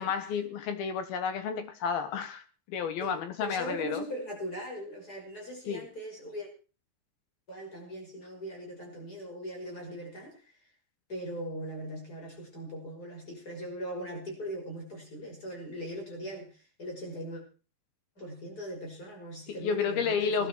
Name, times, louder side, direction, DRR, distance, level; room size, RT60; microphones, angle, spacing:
voice 1, 0.0-4.0 5.7-5.9 19.5-20.5, left 6 dB, 65° left, 2.8 m, -31 dB
voice 2, 3.0-6.5 7.5-10.4 11.1-16.5 16.8-17.4 18.2-20.5, equal, 20° left, 6.1 m, -40 dB
19.5 x 12.0 x 4.6 m
omnidirectional pair, 5.2 m